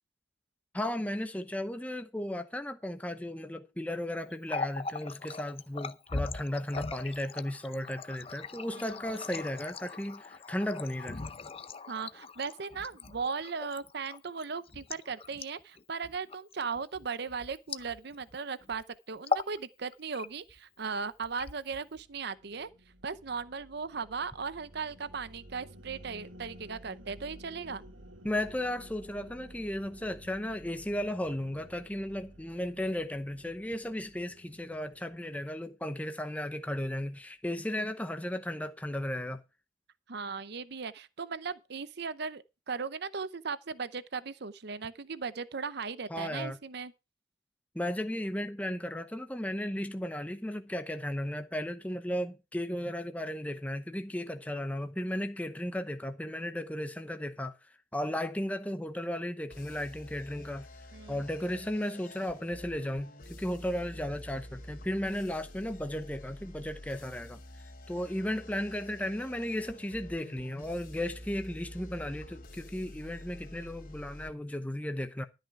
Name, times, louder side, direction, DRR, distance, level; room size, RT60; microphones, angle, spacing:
voice 1, 0.7-11.2 28.2-39.4 46.1-46.6 47.7-57.5 57.9-60.7 61.1-67.4 67.9-75.3, left 1 dB, 10° left, 0.8 m, -35 dB
Water tap faucet, 4.3-18.3 18.6-18.8 19.2-19.6 19.9-20.6 21.2-22.0, left 4 dB, 30° left, 0.6 m, -39 dB
voice 2, 11.9-22.7 23.0-27.8 40.1-46.9 60.9-61.2, right 5 dB, 55° right, 0.7 m, -37 dB
sound 1, 21.0-35.5, equal, 90° right, 2.5 m, -53 dB
sound 2, 59.5-74.3, left 1 dB, 45° left, 2.7 m, -48 dB
13.0 x 9.1 x 4.7 m
head